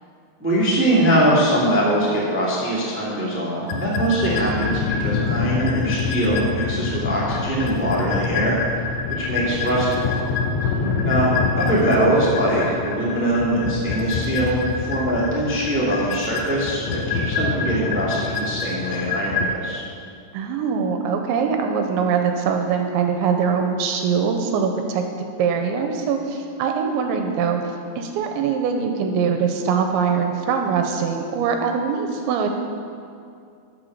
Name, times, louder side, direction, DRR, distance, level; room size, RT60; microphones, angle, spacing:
voice 1, 0.4-8.5 9.2-10.1 11.0-19.8, right 1 dB, 10° right, -7 dB, 0.7 m, -22 dB
sound 1, 3.7-19.5, left 5 dB, 85° left, 2.2 m, -26 dB
voice 2, 10.8-11.2 20.3-32.5, right 6 dB, 85° right, 4 dB, 2.9 m, -23 dB
13.0 x 6.5 x 6.7 m, 2.5 s
omnidirectional pair, 5.5 m